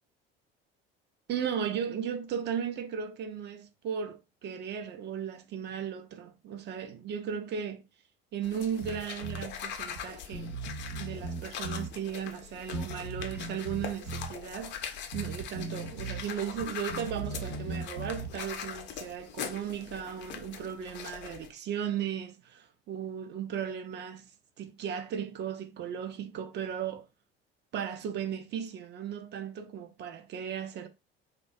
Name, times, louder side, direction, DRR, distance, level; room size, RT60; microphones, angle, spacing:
voice 1, 1.3-7.8 8.3-10.5 11.0-14.8 15.1-24.2 24.6-27.1 27.7-30.9, right 8 dB, 35° right, 0.4 m, -36 dB
sound 1, 8.4-21.5, left 8 dB, 35° left, 0.4 m, -42 dB
Bass guitar, 8.8-9.5 10.0-10.1 10.3-11.9 12.7-14.3 15.1-16.2 16.5-18.4, right 3 dB, 85° right, 0.7 m, -38 dB
2.2 x 2.2 x 2.5 m
figure-of-eight pair, 60°, 31 cm